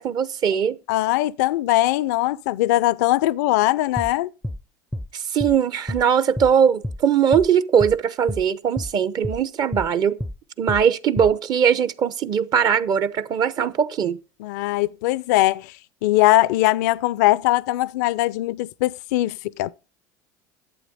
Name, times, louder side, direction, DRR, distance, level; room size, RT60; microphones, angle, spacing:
voice 1, 0.0-0.8 5.1-10.2 10.6-14.2, right 7 dB, 45° right, 0.8 m, -20 dB
voice 2, 0.9-4.3 14.4-15.7 16.0-19.8, left 17 dB, 70° left, 0.5 m, -21 dB
sound 1, 4.0-4.1 4.4-4.6 4.9-5.1 5.4-5.6 5.9-6.0 6.4-6.5 6.8-7.0 7.3-7.5 7.8-8.0 8.3-8.4 8.8-8.9 9.2-9.4 9.7-9.9 10.2-10.4 10.7-10.8 11.2-11.3, left 1 dB, ahead, 0.5 m, -29 dB
11.5 x 8.2 x 5.2 m
hypercardioid pair, 80°, 10 cm